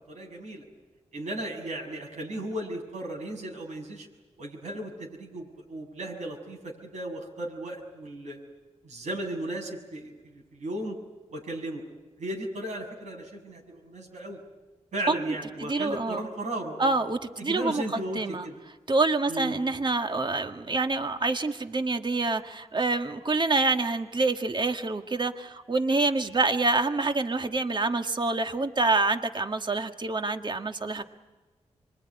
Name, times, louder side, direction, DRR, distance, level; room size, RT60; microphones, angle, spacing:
voice 1, 0.1-0.6 1.1-4.1 4.4-8.4 8.8-11.0 11.3-11.8 12.2-14.4 14.9-16.9 17.4-18.6 19.3-19.6, right 1 dB, 85° right, 1 dB, 6.8 m, -35 dB
voice 2, 15.6-16.2 16.8-17.8 18.2-18.5 18.9-31.0, right 3 dB, 40° right, 6 dB, 1.8 m, -26 dB
26.0 x 22.5 x 9.8 m, 1.2 s
cardioid pair, 60°, 12 cm